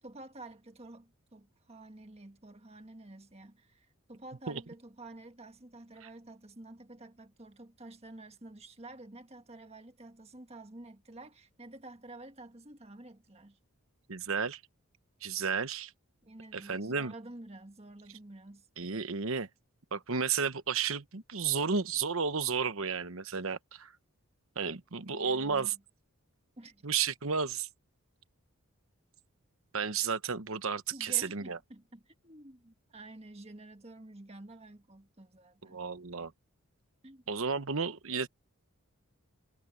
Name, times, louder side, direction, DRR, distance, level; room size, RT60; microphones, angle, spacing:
voice 1, 0.0-13.6 16.2-18.7 23.4-23.5 25.0-25.8 26.6-26.8 30.9-35.8 37.0-37.2, right 2 dB, 25° right, 1.6 m, -50 dB
voice 2, 14.1-14.6 15.2-15.9 16.5-17.1 18.8-19.5 19.9-23.9 24.6-25.7 26.8-27.7 29.7-31.6 35.7-36.3 37.3-38.3, right 6 dB, 65° right, 1.0 m, -32 dB
head